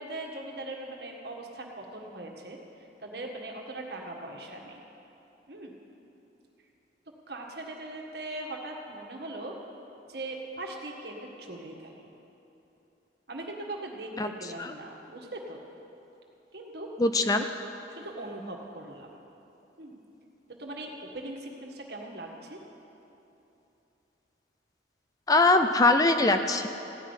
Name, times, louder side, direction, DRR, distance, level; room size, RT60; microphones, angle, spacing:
voice 1, 0.0-2.6 3.0-4.8 5.5-5.7 7.3-9.6 10.1-12.1 13.3-15.6 16.5-16.9 17.9-19.2 19.8-20.0 20.6-22.6, right 2 dB, 60° right, 1 dB, 1.7 m, -40 dB
voice 2, 17.0-17.5 25.3-26.7, left 2 dB, 20° left, 7 dB, 0.4 m, -22 dB
15.5 x 6.1 x 10.0 m, 3.0 s
head